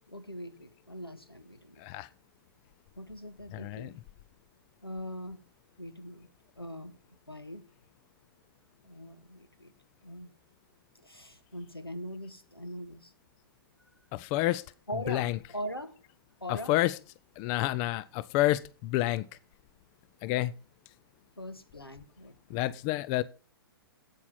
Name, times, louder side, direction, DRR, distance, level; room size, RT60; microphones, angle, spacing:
voice 1, 0.1-1.8 3.0-3.9 4.8-5.4 5.8-6.3 6.6-7.0 7.3-7.6 8.8-9.7 10.0-10.3 11.0-13.1 14.9-15.9 16.4-16.7 21.4-22.7, equal, 90° left, 1.6 m, -41 dB
voice 2, 3.5-3.9 14.1-14.6 14.9-15.4 16.5-16.9 17.4-19.3 20.2-20.5 22.5-23.2, left 16 dB, 25° left, 0.4 m, -29 dB
8.4 x 8.4 x 5.6 m
figure-of-eight pair, 115°, 12 cm